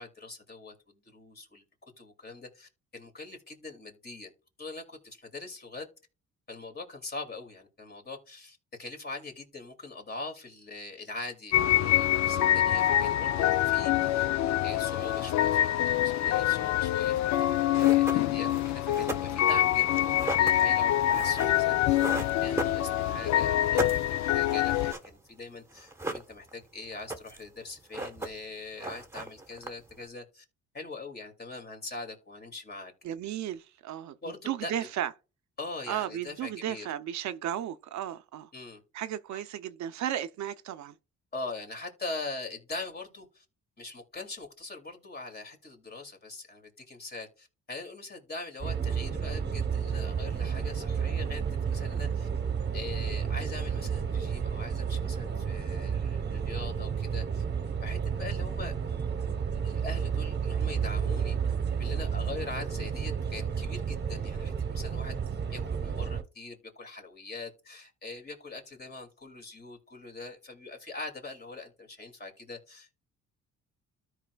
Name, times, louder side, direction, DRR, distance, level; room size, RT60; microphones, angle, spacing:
voice 1, 0.0-1.6 2.0-4.3 4.6-5.9 6.5-14.3 14.6-22.0 22.4-30.4 30.7-32.9 34.2-34.7 35.6-36.9 38.5-38.8 39.3-39.4 41.3-43.4 43.8-52.3 52.7-57.4 57.8-58.7 59.6-61.4 61.8-65.2 65.5-73.0, left 3 dB, 35° left, 2.3 m, -42 dB
sound 1, 11.5-24.9, left 12 dB, 65° left, 0.5 m, -25 dB
sound 2, 17.4-17.5 17.8-23.2 23.5-25.1 25.4-25.5 25.7-26.6 26.9-27.5 27.8-28.5 28.8-30.0, right 2 dB, 10° right, 1.1 m, -37 dB
voice 2, 33.0-34.2 34.5-35.1 35.9-38.5 38.9-40.9, right 11 dB, 70° right, 0.6 m, -34 dB
sound 3, 48.6-66.2, right 7 dB, 35° right, 0.9 m, -31 dB
13.5 x 4.7 x 2.3 m
cardioid pair, 90°, 30 cm